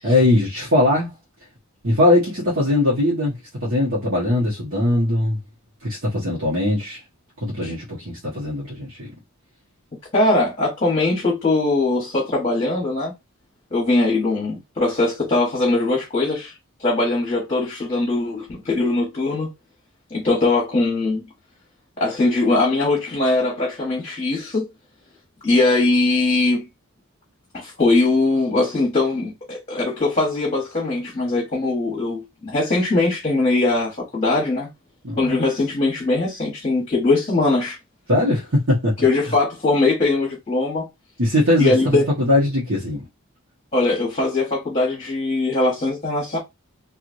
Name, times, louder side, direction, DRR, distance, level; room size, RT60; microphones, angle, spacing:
voice 1, 0.0-1.1 1.8-3.4 3.6-5.4 5.8-7.0 7.4-9.1 35.0-35.4 38.1-39.0 41.2-43.1, left 1 dB, 60° right, 1.3 m, -20 dB
voice 2, 10.1-13.1 13.7-16.5 16.8-19.5 20.1-21.2 22.0-24.7 25.4-26.7 27.5-34.7 35.2-37.8 39.0-40.9 41.6-42.0 43.7-46.4, left 2 dB, 30° left, 1.2 m, -21 dB
3.1 x 2.6 x 2.6 m
head